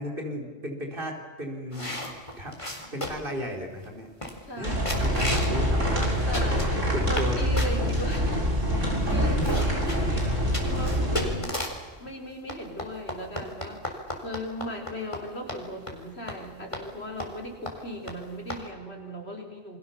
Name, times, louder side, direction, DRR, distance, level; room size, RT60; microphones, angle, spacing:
voice 1, 0.0-2.0 2.4-4.1 4.6-6.2 6.9-7.5 9.2-9.9, equal, 45° right, 2 dB, 4.8 m, -35 dB
sound 1, 1.7-3.3 3.8-3.9 4.2-4.6 4.8-5.6 5.9-7.3 7.6-8.2 8.8-8.9 9.1-11.9 12.5-15.2 15.5-15.6 15.9-16.0 16.3-16.4 16.7-16.8 17.2-17.4 17.7-17.8 18.1-18.2 18.5-18.6, left 1 dB, 25° left, 4.2 m, -34 dB
voice 2, 4.4-4.9 6.3-8.4 8.7-11.6 12.0-13.8 14.2-19.8, equal, 55° left, 2 dB, 4.9 m, -38 dB
sound 2, 4.6-11.3, equal, 90° right, 7.3 m, -25 dB
29.0 x 24.5 x 7.3 m, 1.4 s
omnidirectional pair, 1.3 m